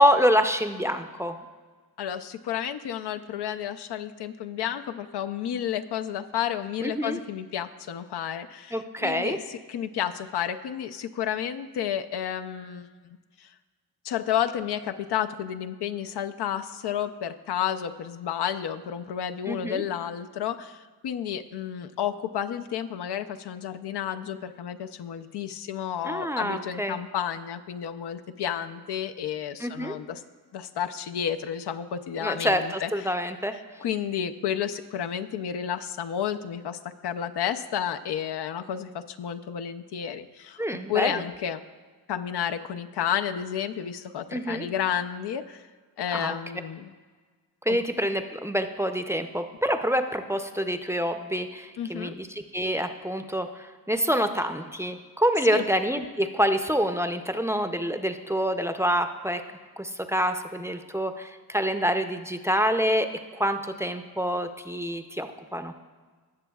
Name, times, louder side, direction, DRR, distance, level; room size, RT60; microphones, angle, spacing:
voice 1, 0.0-1.4 6.8-7.2 8.7-9.4 19.5-19.8 26.0-27.0 29.6-30.0 32.2-33.5 40.6-41.2 44.3-44.7 46.1-46.4 47.7-59.4 59.8-63.1 63.4-65.7, equal, 5° right, 7 dB, 0.5 m, -26 dB
voice 2, 2.0-13.5 14.0-30.2 30.5-33.1 33.8-41.6 42.1-45.7 46.0-46.9 47.7-47.8 51.8-52.1 55.5-55.6, left 9 dB, 85° left, 9 dB, 0.6 m, -31 dB
18.5 x 7.0 x 2.3 m, 1.5 s
wide cardioid pair, 95°, 39 cm